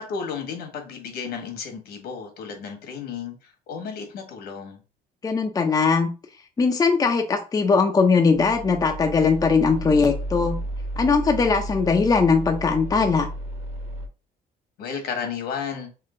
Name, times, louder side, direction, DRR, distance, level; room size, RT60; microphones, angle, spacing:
voice 1, 0.0-4.8 14.8-15.9, left 6 dB, 70° left, 1.5 m, -33 dB
voice 2, 5.2-6.1 6.6-10.6 11.0-13.3, left 4 dB, 20° left, 0.6 m, -20 dB
sound 1, 8.3-14.1, right 1 dB, 40° right, 1.2 m, -33 dB
3.7 x 3.2 x 3.8 m
cardioid pair, 110°, 17 cm